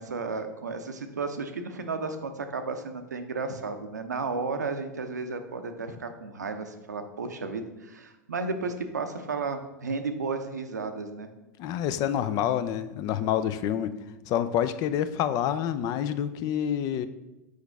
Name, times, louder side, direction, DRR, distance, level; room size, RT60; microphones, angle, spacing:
voice 1, 0.0-11.3, right 4 dB, 85° right, 7 dB, 0.6 m, -33 dB
voice 2, 11.6-14.0 14.3-17.1, left 10 dB, 45° left, 12 dB, 0.4 m, -27 dB
6.3 x 4.9 x 3.4 m, 0.98 s
hypercardioid pair, 90°, 9 cm